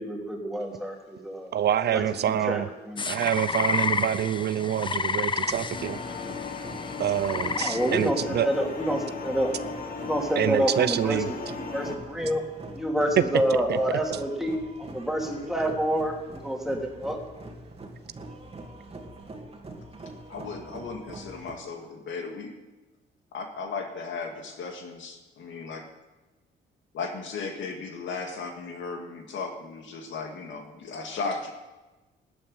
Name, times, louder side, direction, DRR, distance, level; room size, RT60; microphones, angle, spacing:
voice 1, 0.0-1.5 1.9-3.0 7.6-9.5 10.0-12.4 12.7-17.2, equal, ahead, 0 dB, 3.1 m, -28 dB
voice 2, 1.5-2.7 3.1-6.0 7.0-8.5 10.4-11.3 13.7-13.8 15.7-15.8, right 10 dB, 55° right, 15 dB, 0.5 m, -26 dB
sound 1, 3.0-8.1, left 4 dB, 25° left, 0.6 m, -30 dB
sound 2, 5.4-21.5, right 2 dB, 30° right, 2.4 m, -43 dB
sound 3, 5.7-12.0, left 4 dB, 45° left, 1.8 m, -37 dB
voice 3, 20.3-22.5 23.3-25.8 26.9-31.5, left 4 dB, 75° left, 4 dB, 2.1 m, -36 dB
12.5 x 8.9 x 8.8 m, 1.1 s
cardioid pair, 90°, 20 cm